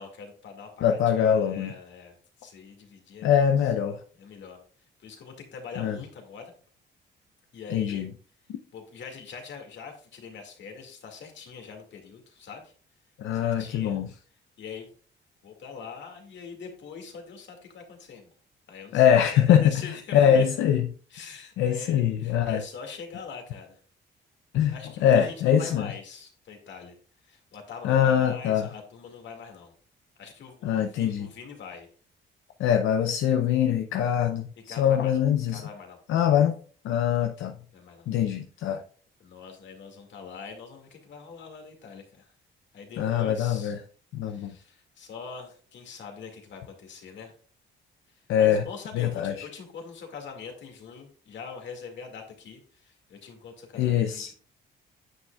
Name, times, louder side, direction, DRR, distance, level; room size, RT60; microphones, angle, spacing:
voice 1, 0.0-3.3 4.2-4.6 5.0-6.5 7.5-8.0 8.7-12.7 13.3-14.0 14.6-14.9 15.4-18.3 18.7-20.5 21.1-23.8 24.7-26.9 27.2-29.7 30.2-31.9 34.7-36.0 36.9-37.1 37.7-38.1 39.2-42.3 42.7-43.7 44.2-47.3 48.4-54.3, left 5 dB, 65° left, 2.1 m, -43 dB
voice 2, 0.8-1.7 3.2-4.0 5.8-6.0 7.7-8.1 13.2-14.1 18.9-20.9 21.6-22.6 24.5-24.7 25.0-25.9 27.8-28.7 30.6-31.3 32.6-35.6 36.1-36.5 36.8-37.5 38.1-38.8 43.0-43.8 44.1-44.6 48.3-48.6 48.9-49.5 53.8-54.3, left 9 dB, 85° left, 0.6 m, -23 dB
9.4 x 6.2 x 2.3 m
cardioid pair, 90°, 20 cm